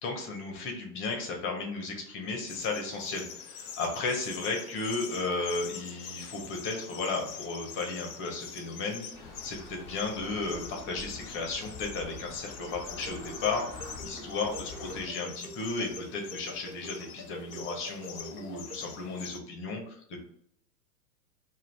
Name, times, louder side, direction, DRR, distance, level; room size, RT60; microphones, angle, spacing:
voice 1, 0.0-13.7 14.0-20.2, left 3 dB, 25° left, 2 dB, 0.7 m, -34 dB
sound 1, 2.5-19.4, left 8 dB, 65° left, 0.6 m, -45 dB
sound 2, 9.1-15.1, left 3 dB, 5° left, 1.1 m, -46 dB
sound 3, 12.7-18.8, right 1 dB, 65° right, 1.0 m, -45 dB
2.5 x 2.3 x 3.2 m, 0.67 s
hypercardioid pair, 105°, 49 cm